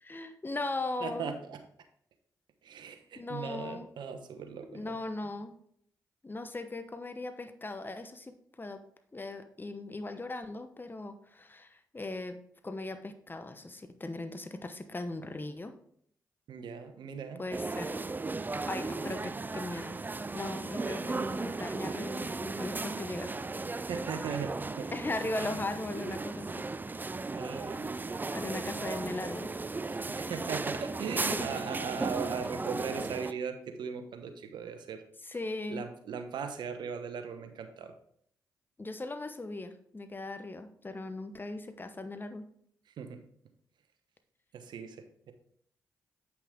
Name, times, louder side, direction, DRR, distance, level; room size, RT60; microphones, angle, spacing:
voice 1, 0.0-1.3 3.2-3.9 4.6-5.5 6.2-8.8 9.1-15.7 17.4-18.0 18.7-20.0 20.3-23.4 24.9-26.7 28.3-29.5 31.3-31.6 35.2-35.9 38.8-42.5, left 2 dB, 25° left, 8 dB, 1.0 m, -38 dB
voice 2, 1.0-1.6 2.6-4.9 16.5-17.4 23.8-24.9 25.4-25.6 26.9-27.9 29.9-35.0 35.7-37.9 43.0-43.2 44.5-45.3, right 6 dB, 75° right, 7 dB, 1.0 m, -39 dB
sound 1, 17.5-33.3, right 3 dB, 25° right, 0.4 m, -36 dB
8.2 x 5.8 x 3.7 m, 0.66 s
supercardioid pair, 45°, 8 cm